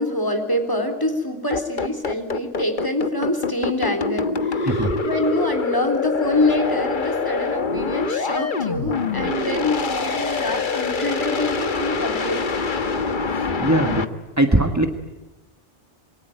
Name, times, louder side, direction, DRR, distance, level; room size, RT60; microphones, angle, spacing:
voice 1, 0.0-12.4, left 1 dB, 15° left, 6 dB, 3.7 m, -25 dB
sound 1, 1.5-14.0, left 4 dB, 45° left, 1.3 m, -25 dB
voice 2, 4.7-5.0 13.3-14.9, right 1 dB, 15° right, 6 dB, 1.4 m, -21 dB
26.5 x 23.5 x 9.2 m, 1.1 s
omnidirectional pair, 1.2 m